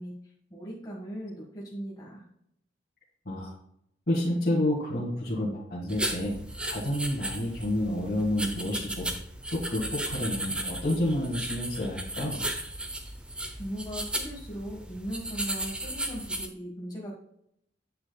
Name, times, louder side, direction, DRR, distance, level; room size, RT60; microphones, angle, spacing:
voice 1, 0.0-2.2 13.6-17.1, equal, 20° left, -4 dB, 1.4 m, -38 dB
voice 2, 4.1-6.4 6.6-9.1 9.5-12.5, left 1 dB, 55° left, -6 dB, 1.8 m, -29 dB
sound 1, 5.9-16.5, right 1 dB, 5° right, 0.6 m, -35 dB
9.0 x 6.7 x 2.3 m, 0.73 s
head